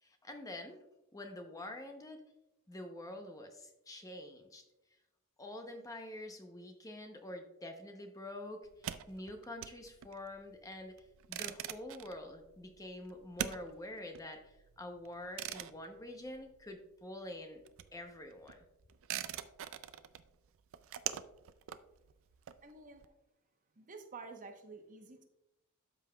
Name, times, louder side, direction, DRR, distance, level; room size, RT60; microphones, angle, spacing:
voice 1, 0.0-0.8 1.1-2.2 2.7-4.6 5.4-17.6 17.9-18.6, left 1 dB, 15° left, 5 dB, 0.7 m, -47 dB
sound 1, 8.6-17.0 17.3-23.0, right 10 dB, 65° right, 0.4 m, -44 dB
voice 2, 22.6-23.1 23.8-25.2, right 4 dB, 35° right, 5 dB, 0.9 m, -50 dB
12.5 x 5.6 x 2.3 m, 0.89 s
head